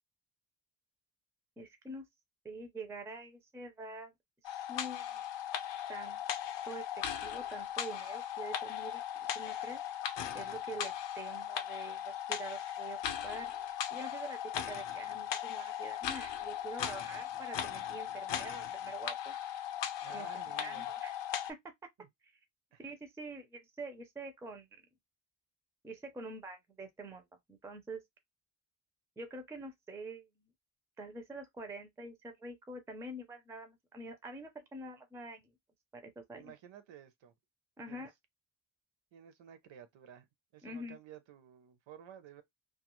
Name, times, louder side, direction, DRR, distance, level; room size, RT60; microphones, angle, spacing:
voice 1, 1.6-2.0 2.4-4.1 4.4-5.3 5.9-6.2 6.6-9.8 10.3-13.5 13.9-19.4 20.1-21.2 21.5-21.6 22.2-22.3 22.8-24.8 25.8-28.0 29.2-30.3 31.0-35.5 35.9-36.5 37.8-38.1 40.6-41.0, right 2 dB, 5° right, 0.3 m, -46 dB
sound 1, 4.4-21.5, left 10 dB, 60° left, 0.5 m, -38 dB
voice 2, 20.0-20.9 22.0-22.1 22.7-22.8 36.3-37.3 37.9-38.1 39.1-40.3 40.5-42.4, right 9 dB, 65° right, 0.6 m, -53 dB
2.4 x 2.3 x 2.9 m
wide cardioid pair, 175°, 48 cm